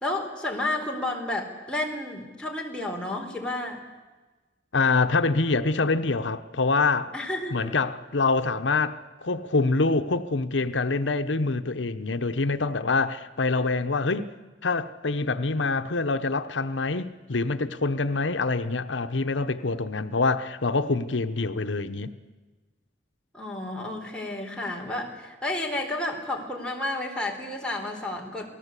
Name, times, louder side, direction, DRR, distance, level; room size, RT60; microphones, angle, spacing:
voice 1, 0.0-3.8 7.1-7.7 23.3-28.5, left 1 dB, 5° left, 3.9 m, -31 dB
voice 2, 4.7-7.1 7.5-14.3 14.6-22.1, left 3 dB, 90° left, 1.0 m, -25 dB
28.0 x 18.5 x 8.3 m
head